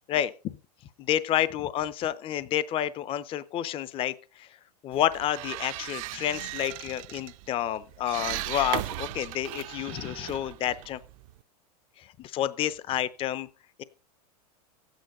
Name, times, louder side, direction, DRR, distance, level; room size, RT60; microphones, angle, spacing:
voice 1, 1.0-4.5 4.8-11.0 12.2-13.5 13.8-13.9, left 11 dB, 25° left, 0.6 m, -29 dB
sound 1, 4.9-11.4, right 17 dB, 60° right, 0.6 m, -37 dB
12.5 x 9.1 x 5.3 m
supercardioid pair, 135°, 20 cm